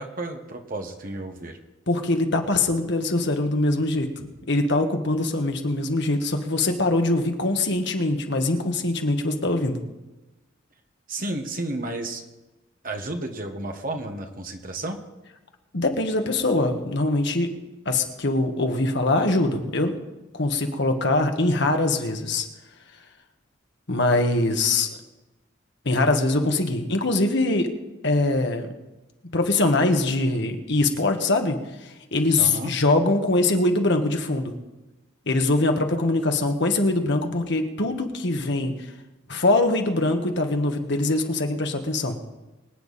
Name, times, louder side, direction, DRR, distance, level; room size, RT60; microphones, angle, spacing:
voice 1, 0.0-1.6 11.1-12.2 12.8-15.0 32.4-32.7, right 2 dB, 45° right, 4 dB, 1.6 m, -32 dB
voice 2, 1.9-9.8 15.7-17.5 17.8-20.0 20.3-22.4 23.9-24.9 25.8-27.7 28.0-28.7 29.3-34.5 35.3-38.7 39.3-42.2, left 2 dB, 60° left, 5 dB, 1.6 m, -23 dB
24.5 x 9.3 x 4.2 m, 1.1 s
head